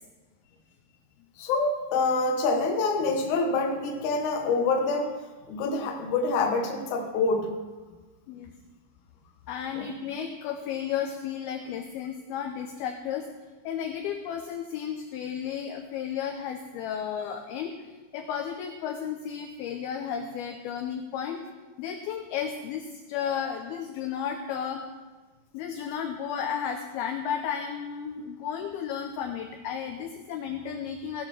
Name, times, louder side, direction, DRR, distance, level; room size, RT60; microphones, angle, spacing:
voice 1, 1.4-5.2 5.5-7.6 9.7-9.9, left 3 dB, 65° left, 3 dB, 1.9 m, -26 dB
voice 2, 9.5-13.3 13.6-17.8 18.1-21.4 21.8-24.8 25.5-31.2, left 8 dB, 80° left, 5 dB, 2.2 m, -33 dB
16.5 x 6.8 x 6.0 m, 1.3 s
omnidirectional pair, 5.2 m